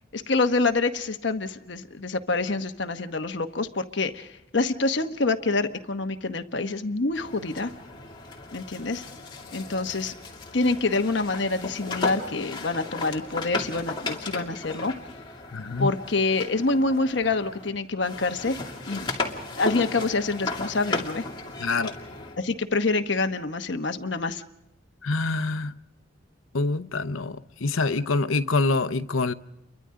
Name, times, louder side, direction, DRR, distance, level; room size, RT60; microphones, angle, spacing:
voice 1, 0.1-7.7 8.5-9.0 9.5-10.1 10.5-14.9 15.8-18.6 18.9-19.1 19.6-21.3 22.4-24.4, left 3 dB, 60° left, 1.1 m, -26 dB
sound 1, 7.1-17.7 18.0-22.4, left 3 dB, 25° left, 2.5 m, -35 dB
voice 2, 15.5-15.9 21.6-21.9 25.0-25.7 26.5-29.3, left 3 dB, 85° left, 0.8 m, -25 dB
30.0 x 23.5 x 3.8 m
head